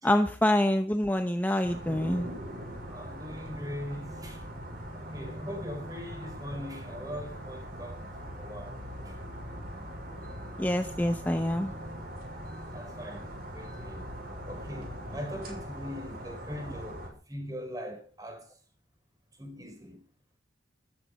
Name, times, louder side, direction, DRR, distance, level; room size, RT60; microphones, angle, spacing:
voice 1, 0.0-2.3 10.6-11.7, left 1 dB, 10° left, 0.8 m, -26 dB
sound 1, 1.6-17.1, equal, 50° right, 6.5 m, -41 dB
voice 2, 2.9-4.4 4.9-8.1 8.4-8.8 9.0-9.1 12.7-14.1 14.5-18.5 19.4-20.0, equal, 20° right, 5.0 m, -41 dB
14.5 x 13.5 x 5.4 m
head